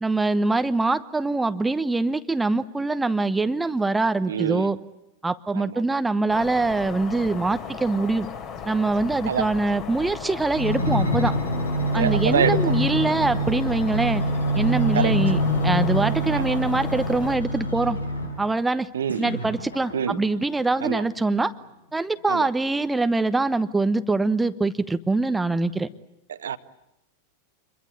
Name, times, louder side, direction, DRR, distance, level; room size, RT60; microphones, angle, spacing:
voice 1, 0.0-4.8 5.2-8.3 8.6-11.3 11.9-14.2 14.5-18.0 18.4-18.9 19.2-21.5 21.9-25.9, right 3 dB, 10° right, 1.0 m, -24 dB
voice 2, 4.3-4.7 5.5-5.6 9.3-9.5 11.9-12.6 14.9-15.1 16.3-16.6 18.9-19.2 19.9-20.2 20.8-21.0 22.3-22.5 26.4-26.6, right 8 dB, 65° right, 1.0 m, -25 dB
sound 1, 6.3-17.4, left 7 dB, 35° left, 3.3 m, -37 dB
sound 2, 10.5-18.5 19.1-20.4 21.0-21.1, equal, 85° left, 4.5 m, -25 dB
27.0 x 22.5 x 8.4 m
figure-of-eight pair, 90°, 0 cm